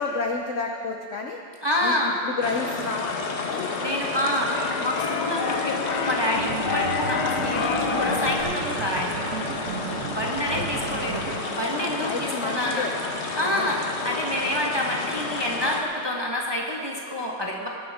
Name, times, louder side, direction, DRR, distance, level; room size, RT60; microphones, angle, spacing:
voice 1, 0.0-1.4 1.8-3.7 7.9-8.2 9.9-10.1 10.5-10.7 11.8-12.9 13.5-13.7, left 4 dB, 80° left, 2 dB, 0.6 m, -31 dB
voice 2, 1.6-2.2 3.8-9.2 10.1-12.8 13.4-17.7, left 1 dB, 15° right, -2 dB, 0.9 m, -28 dB
sound 1, 2.4-15.8, left 3 dB, 45° left, 1.0 m, -31 dB
Keyboard (musical), 2.7-8.4, left 5 dB, 60° left, 1.3 m, -29 dB
sound 2, 6.3-11.4, right 7 dB, 70° right, 0.8 m, -34 dB
19.5 x 11.0 x 3.6 m, 2.5 s
omnidirectional pair, 2.2 m